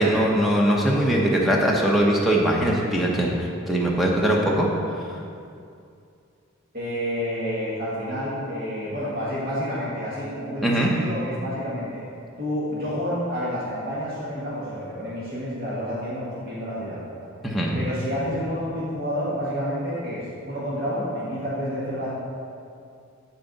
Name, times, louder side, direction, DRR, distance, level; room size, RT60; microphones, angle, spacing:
voice 1, 0.0-4.7 10.6-10.9 17.4-17.8, right 1 dB, ahead, -3 dB, 0.8 m, -21 dB
voice 2, 6.7-12.0 12.4-17.0 17.7-22.1, equal, 45° right, -8 dB, 1.5 m, -29 dB
11.0 x 4.5 x 4.0 m, 2.4 s
head